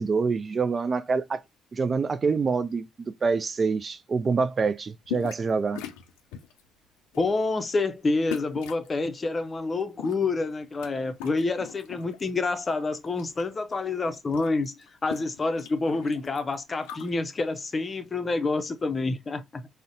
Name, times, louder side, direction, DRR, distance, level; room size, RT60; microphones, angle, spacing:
voice 1, 0.0-1.4 1.7-5.8, right 4 dB, 40° right, 0.3 m, -26 dB
sound 1, 5.1-5.5 5.8-6.6 7.1-7.4 8.3-8.9 9.8-10.9 11.2-12.3 12.7-13.4 13.7-13.8 14.0-17.1, left 12 dB, 80° left, 0.4 m, -40 dB
voice 2, 7.2-14.7 15.0-19.7, left 3 dB, 35° left, 0.6 m, -28 dB
3.9 x 2.1 x 2.5 m
hypercardioid pair, 60°, 0 cm